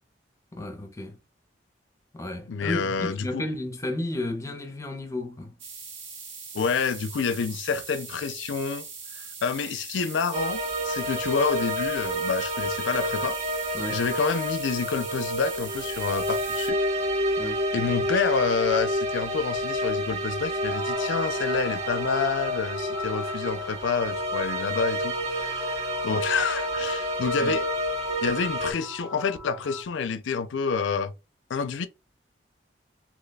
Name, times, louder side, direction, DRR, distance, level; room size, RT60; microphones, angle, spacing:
voice 1, 0.5-1.2 2.1-5.5 13.7-14.0 17.4-17.6 27.4-27.6, left 1 dB, 15° left, 0.6 m, -33 dB
voice 2, 2.5-3.4 6.5-8.9 9.1-13.4 13.9-16.8 17.7-27.6 28.2-31.1 31.5-31.9, left 5 dB, 80° left, 0.4 m, -28 dB
sound 1, 5.6-16.7, right 5 dB, 75° right, 1.0 m, -41 dB
sound 2, 10.3-28.7, equal, 35° right, 0.5 m, -29 dB
sound 3, 20.7-29.8, left 1 dB, 15° right, 0.9 m, -39 dB
2.9 x 2.2 x 3.9 m
head